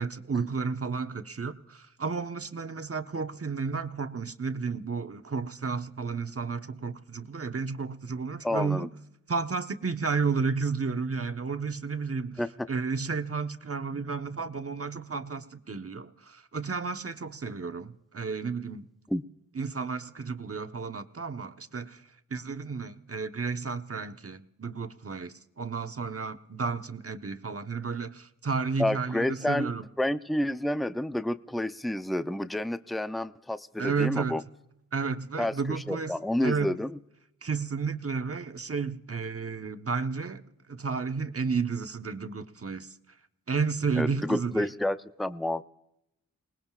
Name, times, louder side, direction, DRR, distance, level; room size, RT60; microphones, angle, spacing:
voice 1, 0.0-8.9 9.3-12.4 12.7-18.8 19.5-22.0 22.3-29.8 33.8-34.4 34.9-36.1 36.4-36.7 37.4-40.4 40.7-42.9 43.5-44.7, right 5 dB, 40° right, 1.1 m, -32 dB
voice 2, 8.4-8.9 12.4-12.5 19.1-19.2 28.8-29.7 30.0-34.4 35.4-37.0 44.0-45.6, left 1 dB, ahead, 0.6 m, -29 dB
28.5 x 19.5 x 2.4 m
cardioid pair, 50°, 34 cm